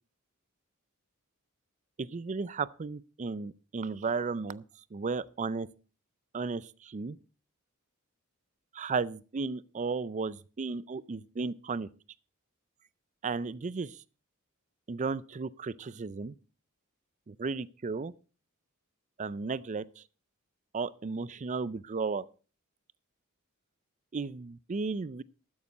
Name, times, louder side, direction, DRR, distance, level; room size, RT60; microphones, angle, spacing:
voice 1, 2.0-4.6 4.9-5.7 6.3-7.2 8.7-11.9 13.2-14.0 14.9-16.3 17.3-18.1 19.2-20.0 20.7-22.3 24.1-25.2, right 4 dB, 35° right, 0.4 m, -34 dB
13.0 x 9.6 x 4.1 m
head